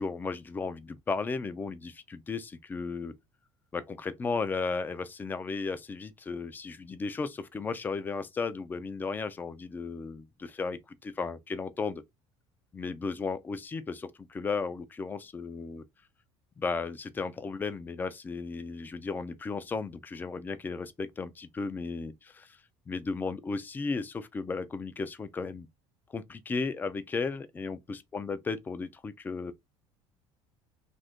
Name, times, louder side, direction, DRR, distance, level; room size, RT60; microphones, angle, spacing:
voice 1, 0.0-3.1 3.7-12.0 12.7-15.8 16.6-22.6 22.9-25.7 26.1-29.5, left 4 dB, 15° left, 0.3 m, -35 dB
2.6 x 2.5 x 3.4 m
cardioid pair, 140°, 12 cm